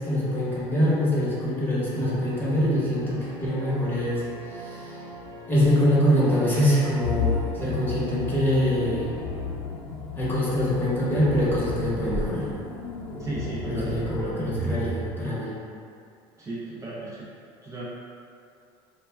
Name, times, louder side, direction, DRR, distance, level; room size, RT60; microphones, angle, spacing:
voice 1, 0.0-5.0 5.5-9.1 10.1-12.5 13.6-15.5, equal, 15° left, -8 dB, 0.9 m, -24 dB
sound 1, 2.0-9.4, right 2 dB, 80° right, 0.8 m, -41 dB
sound 2, 7.0-15.1, left 4 dB, 60° left, 0.6 m, -33 dB
voice 2, 13.2-13.9 16.4-17.3 17.6-17.9, right 2 dB, 25° right, -7 dB, 0.5 m, -35 dB
2.3 x 2.1 x 3.3 m, 2.5 s
supercardioid pair, 100°, 12 cm